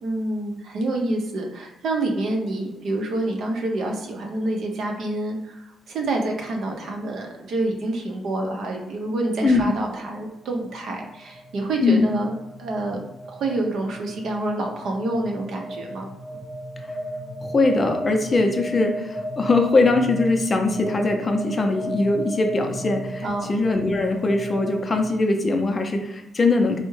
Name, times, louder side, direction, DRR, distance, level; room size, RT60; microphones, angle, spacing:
voice 1, 0.0-12.3 12.6-13.0 13.3-16.1 23.2-23.5, right 2 dB, 70° right, 2 dB, 0.6 m, -27 dB
sound 1, 9.0-25.1, equal, 45° right, 0.9 m, -35 dB
voice 2, 17.4-26.8, left 3 dB, 35° left, 4 dB, 0.5 m, -21 dB
3.4 x 2.0 x 3.1 m, 0.94 s
cardioid pair, 90°, 0 cm